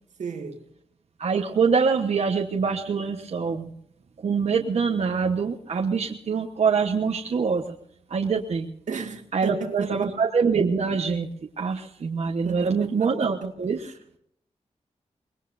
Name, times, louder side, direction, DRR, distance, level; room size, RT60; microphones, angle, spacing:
voice 1, 0.2-0.7 8.9-10.2 12.4-14.0, right 5 dB, 85° right, 2.0 m, -35 dB
voice 2, 1.2-3.7 4.2-7.6 8.1-8.7 9.3-11.3 11.6-13.9, right 5 dB, 60° right, 1.2 m, -24 dB
25.0 x 21.0 x 2.7 m
wide cardioid pair, 175°, 12 cm